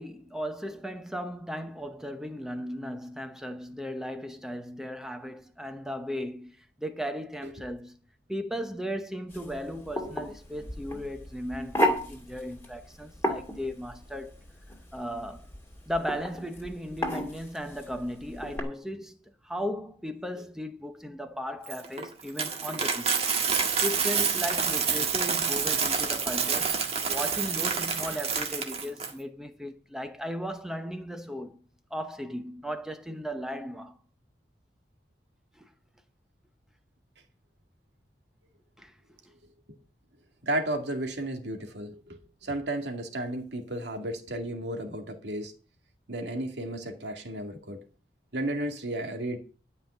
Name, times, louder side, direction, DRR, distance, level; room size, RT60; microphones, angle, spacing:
voice 1, 0.0-8.0 8.3-14.4 14.9-15.5 15.9-23.3 23.8-26.8 27.1-31.6 31.9-34.0 35.5-35.7 38.8-38.9, equal, 5° right, 0.9 m, -36 dB
sound 1, 9.3-18.6, equal, 15° left, 2.4 m, -33 dB
Coin (dropping), 21.7-29.1, right 6 dB, 35° right, 1.7 m, -28 dB
voice 2, 40.4-45.5 46.1-47.8 48.3-49.4, right 1 dB, 70° right, 2.2 m, -33 dB
12.0 x 5.5 x 8.9 m
head